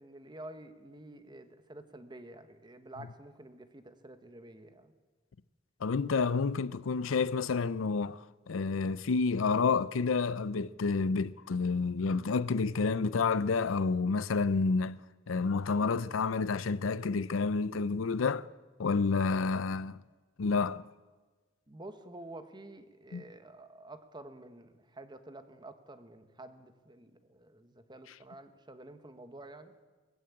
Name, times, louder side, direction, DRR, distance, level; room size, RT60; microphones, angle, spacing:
voice 1, 0.0-4.9 21.7-29.7, right 2 dB, 25° right, 1.4 m, -49 dB
voice 2, 5.8-15.0 15.3-18.5 18.8-20.0 20.4-20.9 23.1-23.2, left 4 dB, 75° left, 0.5 m, -29 dB
19.5 x 15.5 x 8.6 m
head